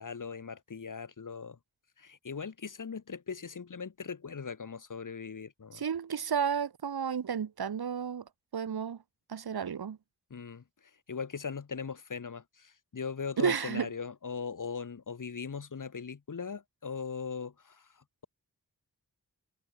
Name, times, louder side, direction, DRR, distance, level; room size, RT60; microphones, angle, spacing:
voice 1, 0.0-1.6 2.0-5.8 10.3-10.6 11.1-17.9, left 5 dB, 55° left, 1.4 m, -39 dB
voice 2, 5.7-8.2 8.5-9.0 9.3-10.0 13.4-13.9, right 7 dB, 85° right, 1.4 m, -32 dB
cardioid pair, 45°, 37 cm